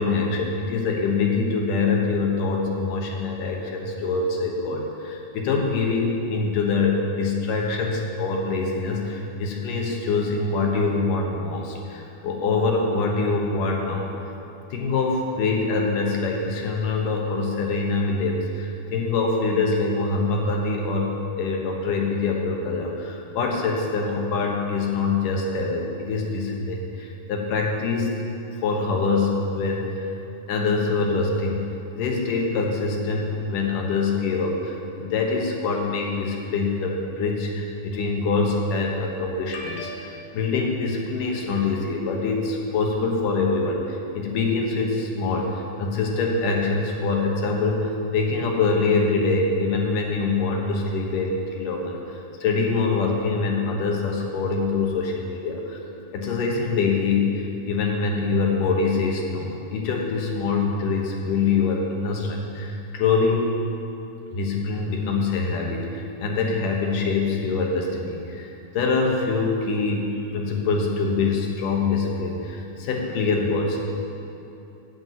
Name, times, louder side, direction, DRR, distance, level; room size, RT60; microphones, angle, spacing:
voice 1, 0.0-14.1 14.7-28.3 28.6-30.1 30.5-31.6 32.0-52.0 52.4-55.8 56.1-63.6 64.3-68.5 68.7-73.8, left 4 dB, 85° left, 0 dB, 2.8 m, -24 dB
8.7 x 7.6 x 8.7 m, 2.9 s
omnidirectional pair, 3.7 m